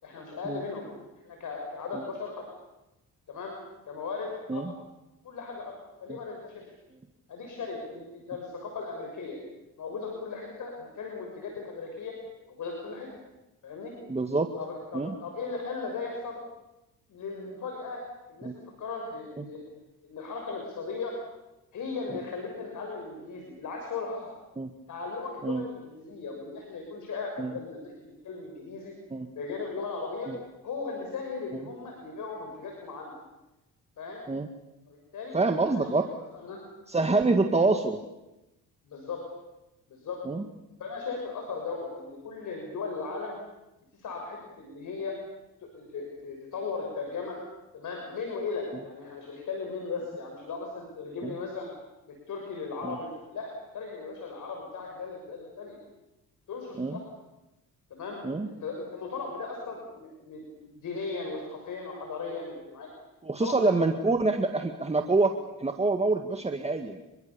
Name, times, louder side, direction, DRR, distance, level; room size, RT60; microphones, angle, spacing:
voice 1, 0.0-0.9 1.2-2.4 3.3-3.6 3.9-4.7 5.2-6.6 7.3-9.4 9.8-12.1 12.5-13.1 13.6-13.9 14.6-16.4 17.1-18.0 18.3-19.6 20.0-21.1 21.7-24.3 24.9-28.9 29.3-30.3 30.6-33.2 34.0-34.2 35.1-35.4 35.7-36.0 36.4-36.6 38.8-39.2 39.9-40.2 40.8-43.4 43.9-45.2 45.7-47.4 47.7-51.7 52.1-55.8 56.5-57.0 57.9-62.9 63.4-63.9, left 4 dB, 65° left, 1 dB, 6.4 m, -37 dB
voice 2, 14.1-14.5 14.9-15.1 18.4-18.5 19.4-19.5 22.1-22.2 24.6-24.7 25.4-25.6 27.4-27.6 29.1-29.3 30.3-30.4 31.5-31.7 34.3-34.5 35.3-36.1 36.9-38.0 40.2-40.5 51.2-51.3 52.8-53.0 56.8-57.0 58.2-58.5 63.2-67.0, right 3 dB, 20° right, 5 dB, 1.9 m, -26 dB
28.5 x 23.0 x 7.0 m, 0.97 s
cardioid pair, 80°, 34 cm